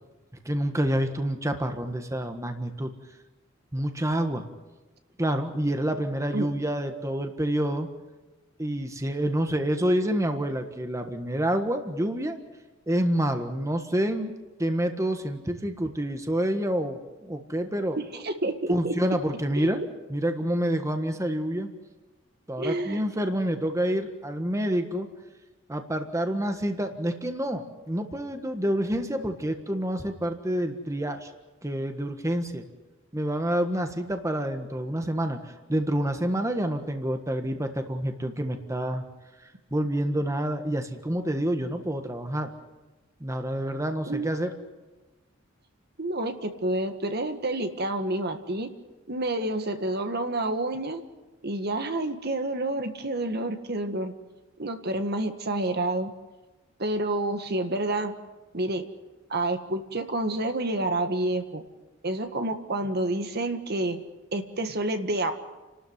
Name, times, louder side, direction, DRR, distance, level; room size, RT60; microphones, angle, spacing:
voice 1, 0.4-2.9 3.7-4.4 5.2-7.9 8.6-12.4 12.9-14.3 14.6-18.0 18.7-19.8 20.1-21.7 22.5-25.1 25.7-31.3 31.6-32.7 33.1-39.0 39.7-42.5 43.2-44.5, right 1 dB, 15° right, 6 dB, 1.5 m, -28 dB
voice 2, 18.0-18.9 19.6-19.8 22.6-23.0 44.1-44.3 46.0-48.7 49.1-51.0 51.4-54.1 54.6-56.1 56.8-58.2 58.5-58.8 59.3-61.6 62.0-64.0 64.3-65.3, right 2 dB, 55° right, 7 dB, 1.7 m, -29 dB
30.0 x 13.0 x 9.5 m, 1.2 s
head